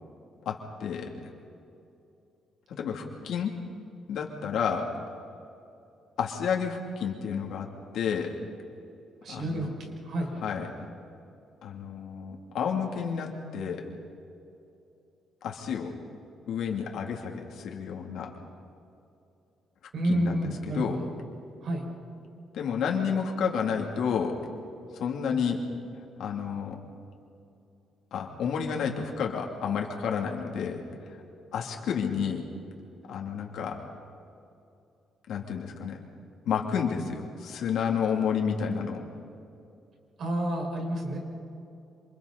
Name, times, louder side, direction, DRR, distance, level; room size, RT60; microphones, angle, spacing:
voice 1, 0.4-1.1 2.8-3.5 4.1-4.9 6.2-7.7 7.9-8.3 9.3-9.7 10.4-10.7 11.6-13.8 15.4-15.9 16.5-18.3 20.1-20.4 20.7-21.0 22.5-24.4 24.9-25.6 26.2-26.8 28.1-30.9 31.5-32.4 33.1-33.8 35.3-36.0 36.5-39.0, left 7 dB, 65° left, 0 dB, 2.9 m, -30 dB
voice 2, 9.2-10.4 19.9-21.1 21.6-21.8 40.2-41.2, right 1 dB, 50° right, 0 dB, 5.4 m, -30 dB
28.0 x 27.5 x 4.2 m, 2.7 s
cardioid pair, 160°, 0 cm